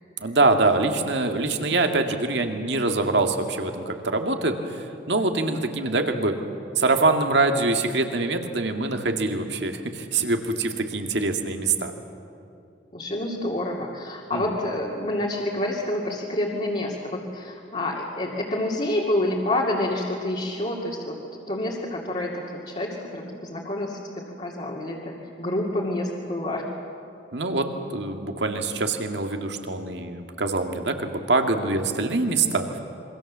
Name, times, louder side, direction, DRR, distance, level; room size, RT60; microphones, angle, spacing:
voice 1, 0.2-6.4 6.7-11.9 14.3-14.4 27.3-32.8, right 3 dB, 65° right, 5 dB, 2.1 m, -24 dB
voice 2, 12.9-21.2 21.5-26.6, left 1 dB, 35° left, -4 dB, 2.6 m, -28 dB
27.0 x 23.5 x 7.5 m, 2.6 s
head